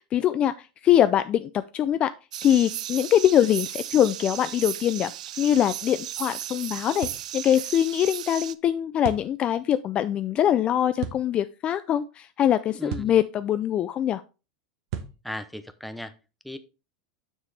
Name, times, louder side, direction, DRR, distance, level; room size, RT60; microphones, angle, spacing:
voice 1, 0.0-2.1 2.4-5.1 5.4-7.1 7.3-14.2, left 10 dB, 30° left, 0.3 m, -23 dB
sound 1, 2.3-8.5, right 12 dB, 90° right, 0.4 m, -35 dB
sound 2, 7.0-7.3 9.0-9.3 11.0-11.2 12.9-13.2 14.9-15.2, right 9 dB, 60° right, 1.2 m, -34 dB
voice 2, 12.7-13.2 15.2-16.1 16.4-16.6, left 1 dB, ahead, 0.7 m, -36 dB
7.3 x 6.5 x 3.3 m
supercardioid pair, 135°, 4 cm